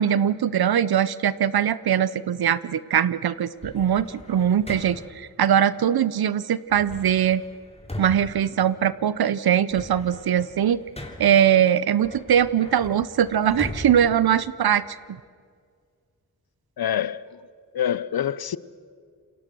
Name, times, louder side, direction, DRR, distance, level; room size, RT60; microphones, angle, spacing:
voice 1, 0.0-7.4 8.0-10.8 11.2-14.8, right 9 dB, 85° right, 0.7 m, -21 dB
sound 1, 3.6-5.3 6.7-9.2 9.5-11.5 12.0-15.0, left 1 dB, 15° left, 3.2 m, -40 dB
voice 2, 16.8-17.4 17.7-18.6, left 10 dB, 80° left, 0.7 m, -26 dB
28.0 x 23.0 x 6.2 m
wide cardioid pair, 80°, 36 cm